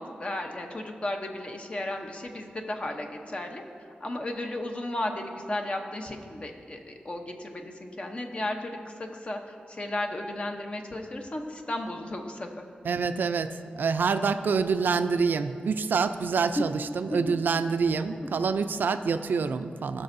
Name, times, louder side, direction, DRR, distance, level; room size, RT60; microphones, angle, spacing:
voice 1, 0.0-3.6 4.0-9.4 9.7-12.5 16.6-16.7 17.1-17.4, left 1 dB, 35° left, 3 dB, 0.8 m, -34 dB
voice 2, 12.8-20.0, right 5 dB, 80° right, 10 dB, 0.3 m, -26 dB
16.5 x 6.0 x 2.6 m, 2.4 s
wide cardioid pair, 115°, 3 cm